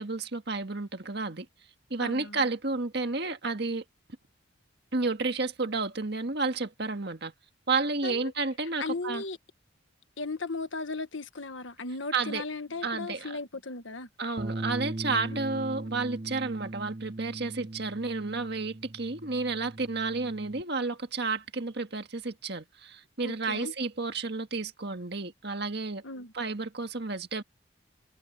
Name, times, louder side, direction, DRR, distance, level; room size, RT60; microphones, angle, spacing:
voice 1, 0.0-1.5 1.9-3.8 4.9-7.3 7.7-9.2 12.1-12.4 12.8-13.4 14.2-26.0 26.3-27.4, right 3 dB, 55° right, 1.8 m, -31 dB
voice 2, 2.0-2.4 8.0-8.3 8.8-9.4 10.2-14.1 15.2-15.4 15.8-16.0 23.2-23.7 26.0-26.3, left 3 dB, 70° left, 1.5 m, -36 dB
Bass guitar, 14.4-20.6, right 2 dB, 25° right, 0.6 m, -39 dB
head